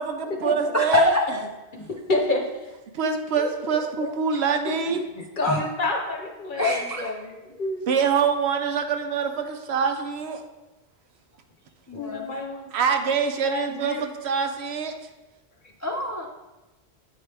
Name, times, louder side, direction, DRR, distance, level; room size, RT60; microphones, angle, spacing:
voice 1, 0.0-1.1 2.9-5.0 7.9-10.4 12.7-14.9, right 6 dB, 75° right, 6 dB, 0.9 m, -25 dB
voice 2, 0.7-1.4 5.4-5.6 6.5-7.1 11.9-12.3 15.8-16.3, left 2 dB, 25° left, -1 dB, 0.3 m, -25 dB
voice 3, 2.1-2.4 3.4-3.5 3.7-4.1 4.6-4.8 5.1-7.8 11.9-12.7 13.2-14.0, left 2 dB, 50° left, 1 dB, 1.0 m, -29 dB
8.1 x 4.8 x 3.3 m, 1.1 s
omnidirectional pair, 1.1 m